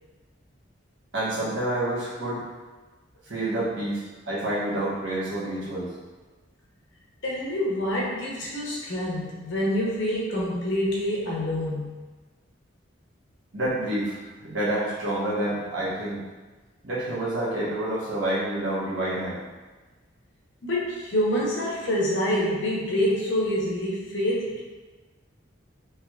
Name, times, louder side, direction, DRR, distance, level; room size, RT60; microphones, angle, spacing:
voice 1, 1.1-2.4 3.3-4.0 4.3-5.9 13.5-16.2 16.8-19.4, right 1 dB, 70° right, -8 dB, 1.1 m, -28 dB
voice 2, 7.2-12.0 20.6-24.6, equal, 70° left, -4 dB, 0.8 m, -26 dB
3.4 x 3.0 x 2.3 m, 1.3 s
head